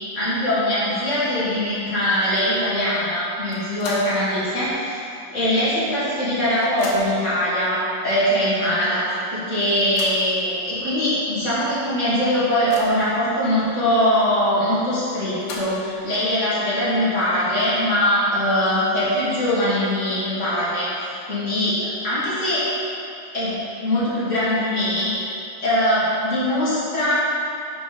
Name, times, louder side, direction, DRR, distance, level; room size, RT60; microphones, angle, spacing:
voice 1, 0.1-5.0 5.3-9.0 9.3-22.7 23.3-25.1 25.6-27.1, left 1 dB, 35° left, -10 dB, 1.1 m, -22 dB
sound 1, 3.5-4.2 4.6-4.7 5.8-5.9 6.2-7.3 8.1-8.2 8.6-8.7 9.6-10.3 11.0-11.1 11.5-11.6 12.1-13.1 15.1-16.0, left 3 dB, 85° left, 2.8 m, -37 dB
5.8 x 5.2 x 5.7 m, 2.7 s
omnidirectional pair, 4.1 m